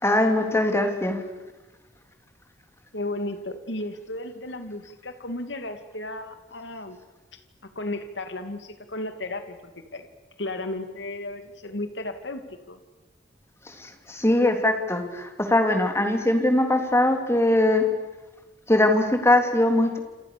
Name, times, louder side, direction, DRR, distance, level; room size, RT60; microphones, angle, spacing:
voice 1, 0.0-1.2 13.7-17.8 18.7-20.0, left 1 dB, 15° left, 5 dB, 3.5 m, -21 dB
voice 2, 2.9-7.0 7.3-7.4 7.7-10.1 10.4-12.8, left 2 dB, 75° left, 8 dB, 2.5 m, -34 dB
29.0 x 27.5 x 6.9 m, 1.2 s
head